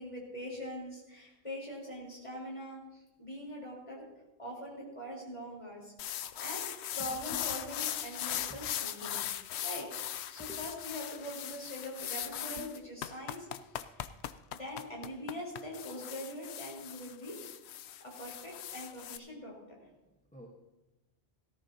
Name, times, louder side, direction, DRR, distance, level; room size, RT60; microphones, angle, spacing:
voice 1, 0.0-4.1 4.4-5.9 6.4-6.6 6.9-9.2 9.6-9.9 10.3-13.5 13.8-14.1 14.5-17.4 18.0-19.5, equal, 30° left, -2 dB, 4.2 m, -43 dB
sound 1, 6.0-19.2, left 11 dB, 80° left, 0.8 m, -39 dB
voice 2, 20.0-20.5, right 1 dB, 5° left, -1 dB, 1.2 m, -50 dB
18.0 x 13.5 x 2.8 m, 0.99 s
omnidirectional pair, 1.1 m